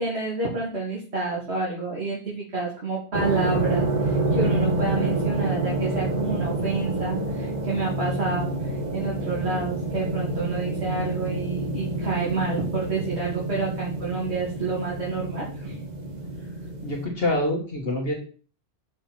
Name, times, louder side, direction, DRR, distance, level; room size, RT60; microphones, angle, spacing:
voice 1, 0.0-15.8, right 3 dB, 70° right, -6 dB, 2.7 m, -29 dB
sound 1, 3.1-17.1, right 2 dB, 40° right, 1.4 m, -28 dB
voice 2, 16.8-18.1, left 1 dB, 60° left, 0 dB, 1.9 m, -26 dB
6.3 x 5.2 x 5.9 m, 0.39 s
omnidirectional pair, 1.1 m